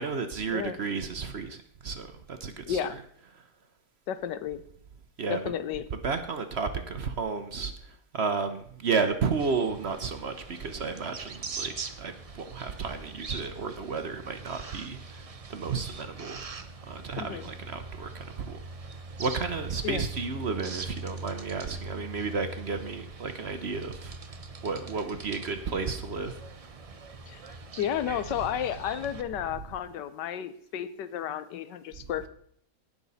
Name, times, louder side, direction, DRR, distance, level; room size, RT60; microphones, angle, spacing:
voice 1, 0.0-2.8 5.2-5.4 5.9-16.4 16.9-18.6 18.9-24.2 24.6-26.4, right 5 dB, 50° right, 8 dB, 0.9 m, -32 dB
voice 2, 2.6-3.0 4.1-4.6 5.3-5.8 17.1-17.5 19.8-20.0 27.2-27.4 27.8-32.3, left 9 dB, 90° left, 13 dB, 1.4 m, -32 dB
sound 1, 9.4-29.2, right 3 dB, 65° right, 0.3 m, -42 dB
17.5 x 6.1 x 4.1 m, 0.63 s
omnidirectional pair, 1.8 m